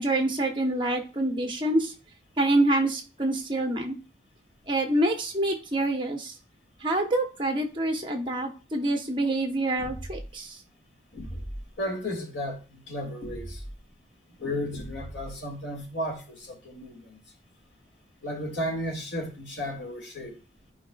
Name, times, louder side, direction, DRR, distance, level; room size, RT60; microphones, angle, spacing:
voice 1, 0.0-1.9 2.4-4.0 4.7-6.3 6.8-10.6, right 1 dB, 25° right, 1.0 m, -26 dB
sound 1, 9.8-10.3 11.2-11.7 13.2-13.8 14.7-15.4, equal, 45° left, 3.2 m, -39 dB
voice 2, 11.8-13.6 14.4-17.2 18.2-20.4, equal, 70° left, 2.0 m, -34 dB
10.0 x 4.8 x 2.3 m
head